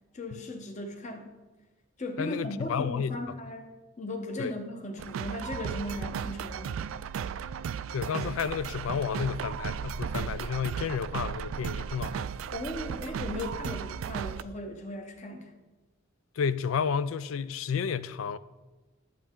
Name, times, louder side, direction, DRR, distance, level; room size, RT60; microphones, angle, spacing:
voice 1, 0.1-1.3 2.0-3.7 4.0-6.9 12.5-15.5, left 1 dB, 35° left, 0.9 m, -37 dB
voice 2, 2.2-3.2 4.4-4.5 7.9-12.3 16.4-18.4, left 6 dB, 90° left, 0.4 m, -31 dB
sound 1, 5.0-14.4, right 7 dB, 75° right, 0.3 m, -35 dB
11.0 x 7.3 x 3.7 m
head